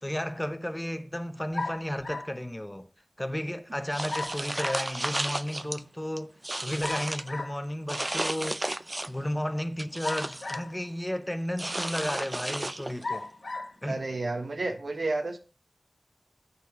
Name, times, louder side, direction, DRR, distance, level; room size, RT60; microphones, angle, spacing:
voice 1, 0.0-2.9 3.2-6.4 6.6-8.7 9.1-13.3 13.8-14.1, equal, 15° left, 0.7 m, -33 dB
sound 1, 1.5-2.4 4.1-4.9 6.8-7.6 10.0-10.9 11.6-11.7 13.0-13.7, left 3 dB, 65° left, 0.9 m, -36 dB
sound 2, 3.9-5.8 6.2-7.3 7.9-9.2 9.6-10.6 11.6-13.1, right 1 dB, 30° right, 0.4 m, -33 dB
voice 2, 13.8-15.4, right 2 dB, 75° right, 1.2 m, -31 dB
8.5 x 4.2 x 5.2 m
wide cardioid pair, 55°, 0 cm